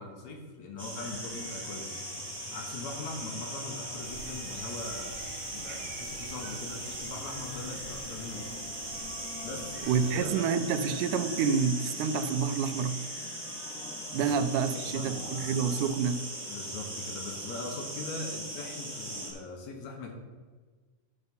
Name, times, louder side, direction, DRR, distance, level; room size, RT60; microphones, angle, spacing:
voice 1, 0.0-2.0 2.5-8.6 9.4-10.5 14.2-14.4 14.7-15.5 16.5-20.1, left 3 dB, 70° left, 2 dB, 2.3 m, -41 dB
sound 1, 0.8-19.3, right 1 dB, 5° right, 1.0 m, -39 dB
sound 2, 1.0-15.9, left 6 dB, 85° left, 2.1 m, -49 dB
sound 3, 4.0-10.3, right 5 dB, 70° right, 1.5 m, -48 dB
voice 2, 9.9-13.0 14.1-16.2, right 6 dB, 85° right, 10 dB, 2.1 m, -28 dB
11.0 x 4.1 x 5.3 m, 1.4 s
omnidirectional pair, 3.5 m